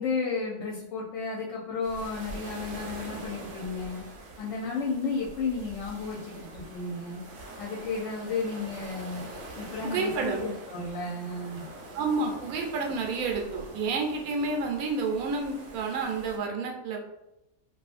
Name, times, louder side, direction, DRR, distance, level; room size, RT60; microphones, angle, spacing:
voice 1, 0.0-4.0 4.4-7.2 7.6-9.2 9.6-11.7, left 4 dB, 70° left, -3 dB, 0.8 m, -33 dB
sound 1, 1.8-16.4, right 2 dB, 65° right, 0.7 m, -44 dB
voice 2, 9.8-10.4 11.9-17.0, right 4 dB, 80° right, 1 dB, 1.0 m, -30 dB
2.7 x 2.4 x 2.4 m, 0.90 s
omnidirectional pair, 1.5 m